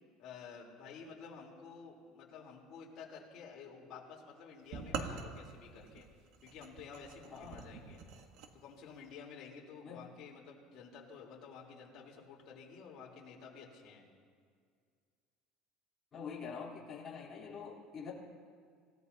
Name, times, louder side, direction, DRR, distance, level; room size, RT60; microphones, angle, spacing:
voice 1, 0.2-6.1 6.4-8.0 8.5-14.0, left 5 dB, 50° left, -3 dB, 3.7 m, -51 dB
sound 1, 4.7-8.5, right 5 dB, 65° right, 1.3 m, -44 dB
voice 2, 7.3-7.7 9.8-10.1 16.1-18.1, left 6 dB, 25° left, -5 dB, 3.7 m, -45 dB
27.0 x 16.5 x 2.9 m, 2.1 s
cardioid pair, 145°, 0 cm